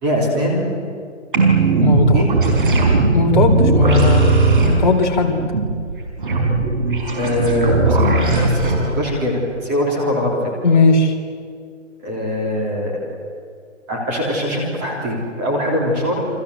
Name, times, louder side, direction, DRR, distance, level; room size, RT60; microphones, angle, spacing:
voice 1, 0.0-0.7 2.1-2.3 7.2-10.4 12.0-13.0 13.9-16.3, left 1 dB, 15° right, -2 dB, 3.5 m, -22 dB
sound 1, 1.3-8.8, right 3 dB, 45° right, 5.5 m, -17 dB
voice 2, 1.8-2.3 3.1-5.4 10.6-11.1, left 3 dB, 35° left, 0 dB, 3.9 m, -17 dB
29.5 x 24.0 x 8.3 m, 2.2 s
hypercardioid pair, 175°, 37 cm